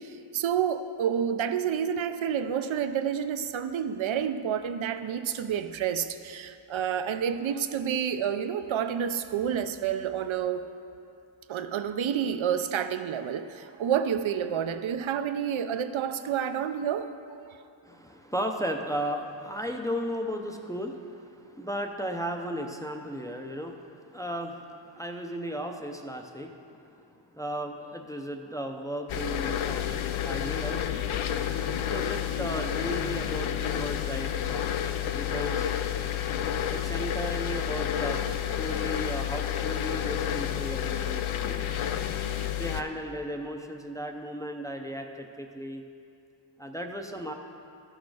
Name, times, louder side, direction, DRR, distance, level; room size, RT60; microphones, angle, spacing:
voice 1, 0.0-10.6 11.5-17.1, right 8 dB, 75° right, 10 dB, 0.6 m, -29 dB
voice 2, 17.8-24.7 24.9-26.6 27.0-30.9 31.7-34.7 35.1-35.7 36.7-38.2 38.6-41.7 42.5-45.8 46.6-47.3, equal, 5° left, 3 dB, 0.5 m, -35 dB
sound 1, 29.1-42.8, left 10 dB, 80° left, 0.6 m, -30 dB
12.5 x 6.4 x 4.8 m, 2.5 s
wide cardioid pair, 100°, 48 cm